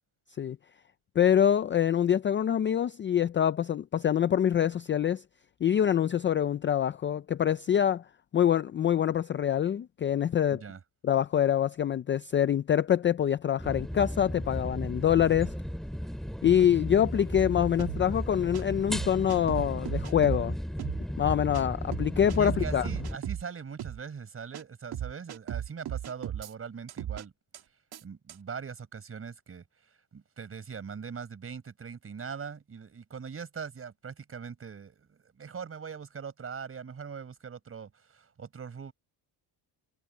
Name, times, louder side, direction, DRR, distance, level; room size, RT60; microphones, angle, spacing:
voice 1, 1.2-5.2 5.6-8.0 8.3-10.6 11.0-15.5 16.4-20.6 21.2-22.9, left 9 dB, 25° left, 0.4 m, -25 dB
voice 2, 10.5-10.8 22.3-27.3 28.0-38.9, right 6 dB, 30° right, 4.9 m, -41 dB
sound 1, 13.6-23.2, equal, ahead, 3.6 m, -35 dB
sound 2, 17.3-17.4 17.8-18.0 18.5-18.6 18.9-20.4 20.8-21.0 21.5-21.6 21.9-23.4 23.8-24.0 24.5-24.6 24.9-26.5 26.9-27.2 27.5-27.6 27.9-28.0 28.3-28.4, right 11 dB, 50° right, 2.1 m, -36 dB
cardioid pair, 150°, 47 cm